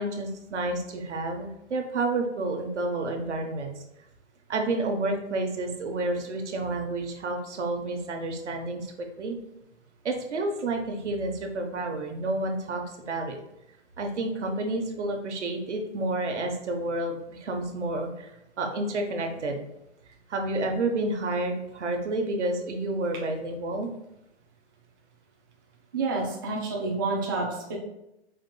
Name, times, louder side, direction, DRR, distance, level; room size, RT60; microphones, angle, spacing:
voice 1, 0.0-3.8 4.5-9.4 10.0-13.4 14.0-18.3 18.6-19.6 20.3-23.9, right 2 dB, 85° right, 3 dB, 1.0 m, -30 dB
voice 2, 25.9-27.8, right 3 dB, 20° right, -2 dB, 0.4 m, -29 dB
4.5 x 3.7 x 2.2 m, 0.88 s
hypercardioid pair, 155°, 34 cm